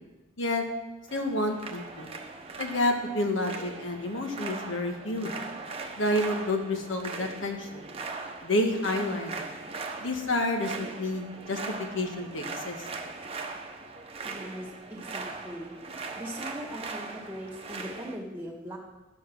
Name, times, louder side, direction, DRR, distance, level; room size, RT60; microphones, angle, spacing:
voice 1, 1.1-2.1 2.6-5.4 6.0-7.9 8.4-9.5 10.0-11.6 11.9-12.8, left 1 dB, 65° left, 4 dB, 1.5 m, -29 dB
sound 1, 1.1-18.2, right 3 dB, 30° right, 0.9 m, -40 dB
voice 2, 14.2-15.7 16.2-18.8, equal, 10° right, 0 dB, 1.9 m, -40 dB
11.0 x 7.4 x 6.1 m, 1.1 s
head